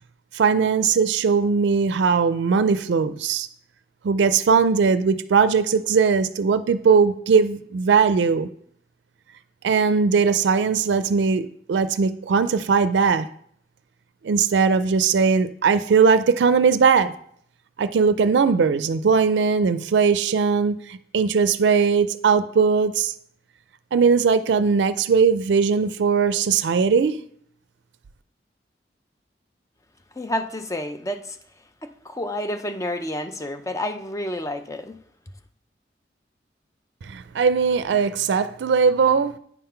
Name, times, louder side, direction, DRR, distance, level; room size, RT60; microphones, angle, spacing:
voice 1, 0.3-3.5 4.0-8.5 9.6-13.3 14.2-17.1 17.8-23.1 23.9-27.2 37.0-39.3, right 5 dB, 90° right, 0.4 m, -19 dB
voice 2, 30.1-31.4 31.8-35.0, left 1 dB, 20° left, 0.5 m, -29 dB
9.2 x 3.7 x 5.6 m
head